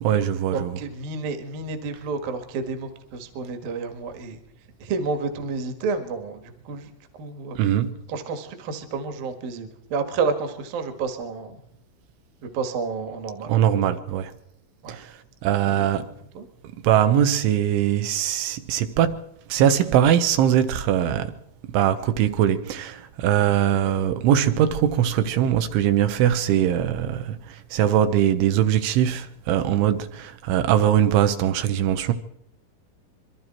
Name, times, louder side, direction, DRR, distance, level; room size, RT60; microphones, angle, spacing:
voice 1, 0.0-0.8 7.6-8.0 13.5-14.3 14.9-16.1 16.8-21.4 21.7-32.1, right 10 dB, 80° right, 3.2 m, -21 dB
voice 2, 0.5-4.4 4.8-6.9 7.2-7.6 8.1-11.6 12.4-13.5 14.8-15.0 15.7-15.9 16.3-16.5, right 4 dB, 60° right, 3.1 m, -30 dB
25.5 x 23.0 x 4.5 m
omnidirectional pair, 5.6 m